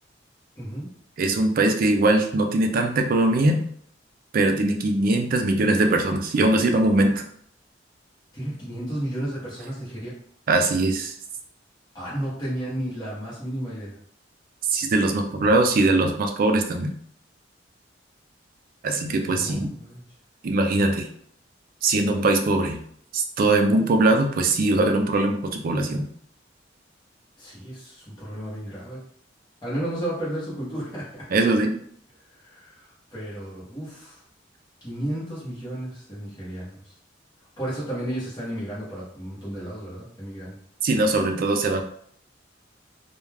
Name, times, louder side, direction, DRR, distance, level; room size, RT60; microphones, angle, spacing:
voice 1, 0.5-0.9 8.3-10.1 11.9-14.0 19.2-20.0 27.4-29.0 29.6-31.2 32.4-34.2 34.8-36.9 37.6-40.6, right 1 dB, 20° left, -9 dB, 0.9 m, -33 dB
voice 2, 1.2-3.6 4.3-7.2 10.5-11.1 14.7-16.9 18.8-19.7 20.4-21.1 21.8-22.8 23.1-26.1 31.3-31.7 40.8-41.8, right 2 dB, 50° right, 4 dB, 0.4 m, -21 dB
2.3 x 2.2 x 3.2 m, 0.64 s
head